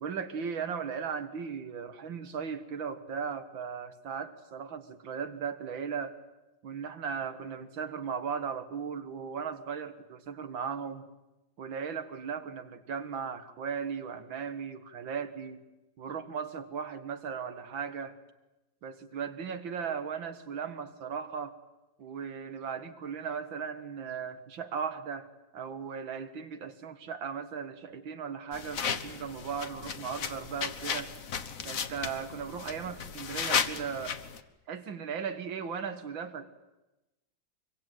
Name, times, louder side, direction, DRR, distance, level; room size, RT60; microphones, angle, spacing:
voice 1, 0.0-6.2 6.6-11.1 11.6-15.7 16.0-18.2 18.8-21.6 22.0-25.3 25.5-31.1 31.6-34.1 34.7-36.5, right 6 dB, 80° right, 10 dB, 2.3 m, -37 dB
sound 1, 28.5-34.4, left 6 dB, 50° left, 1.4 m, -35 dB
25.0 x 23.5 x 9.2 m, 1.0 s
omnidirectional pair, 2.1 m